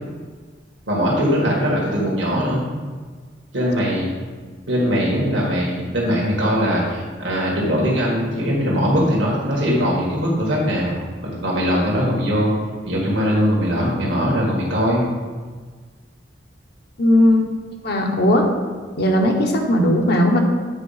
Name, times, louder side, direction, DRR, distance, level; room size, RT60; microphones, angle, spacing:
voice 1, 0.9-2.7 3.5-4.1 4.7-11.0 11.4-12.5 12.8-15.0, equal, 80° right, -4 dB, 1.7 m, -20 dB
voice 2, 17.0-17.5 17.8-18.5 19.0-20.4, left 1 dB, 60° left, 2 dB, 1.1 m, -17 dB
8.3 x 4.2 x 5.7 m, 1.5 s
head